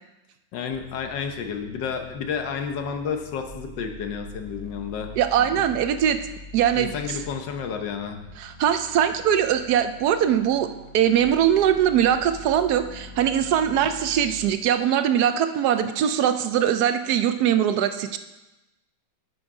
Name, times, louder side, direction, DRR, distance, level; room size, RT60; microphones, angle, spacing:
voice 1, 0.5-5.1 5.4-5.7 6.7-8.2, left 6 dB, 75° left, 6 dB, 1.5 m, -31 dB
sound 1, 0.7-14.5, left 1 dB, 25° left, 1.0 m, -44 dB
voice 2, 5.2-6.2 6.5-7.2 8.4-10.7 10.9-18.2, right 9 dB, 70° right, 10 dB, 1.0 m, -21 dB
10.0 x 6.3 x 4.8 m, 1.0 s
omnidirectional pair, 2.0 m